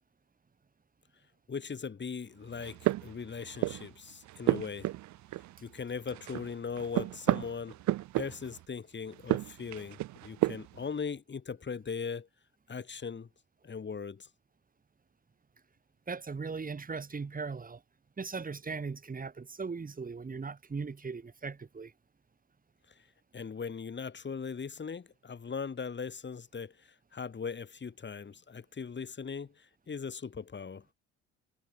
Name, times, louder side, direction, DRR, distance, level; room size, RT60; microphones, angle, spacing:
voice 1, 1.5-4.9 5.6-7.8 8.2-12.3 12.7-13.3 13.6-14.3 23.3-30.8, left 5 dB, 35° left, 7.6 m, -39 dB
sound 1, 2.5-3.9 4.3-5.8 6.1-8.6 9.1-10.8, right 16 dB, 65° right, 1.7 m, -32 dB
voice 2, 16.1-17.8 18.2-21.9, right 4 dB, 25° right, 2.9 m, -38 dB
hypercardioid pair, 65°, 31 cm